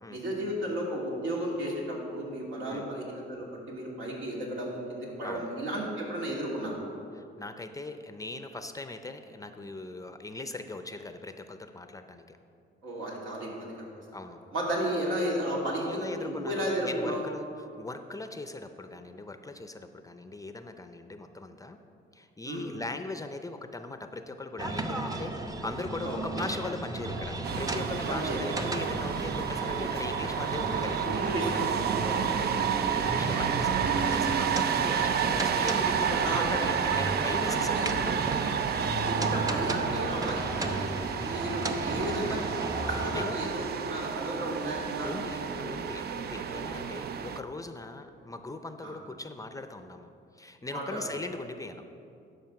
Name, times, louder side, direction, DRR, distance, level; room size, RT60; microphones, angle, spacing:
voice 1, 0.1-6.8 12.8-13.9 14.5-17.2 22.4-22.6 26.0-26.2 28.1-28.4 31.1-32.3 36.0-36.5 37.7-37.9 38.9-40.9 41.2-42.6 42.9-45.7 48.8-48.9 50.7-51.0, right 1 dB, 75° right, -3 dB, 2.5 m, -33 dB
voice 2, 7.2-12.4 14.1-14.4 15.8-21.8 22.1-31.7 32.2-38.2 40.6-40.8 43.1-43.5 45.0-51.8, left 2 dB, 15° left, 8 dB, 0.5 m, -40 dB
sound 1, 24.6-43.3, right 2 dB, 20° right, 0.8 m, -35 dB
sound 2, 27.4-47.4, right 7 dB, 55° right, 0.5 m, -30 dB
12.0 x 5.0 x 5.9 m, 2.6 s
cardioid pair, 90°, 20 cm